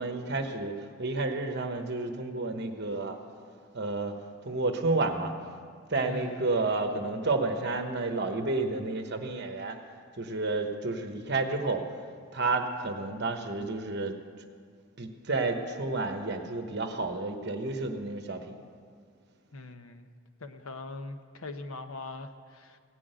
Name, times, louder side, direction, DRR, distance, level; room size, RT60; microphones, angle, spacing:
voice 1, 0.0-3.2 3.7-4.1 4.4-5.3 5.9-9.7 10.2-11.8 12.3-14.2 15.0-18.5, right 3 dB, 50° right, 5 dB, 1.1 m, -30 dB
voice 2, 5.9-6.5 19.5-20.1 20.4-22.8, left 3 dB, 80° left, 8 dB, 0.9 m, -41 dB
17.0 x 6.3 x 9.1 m, 2.1 s
head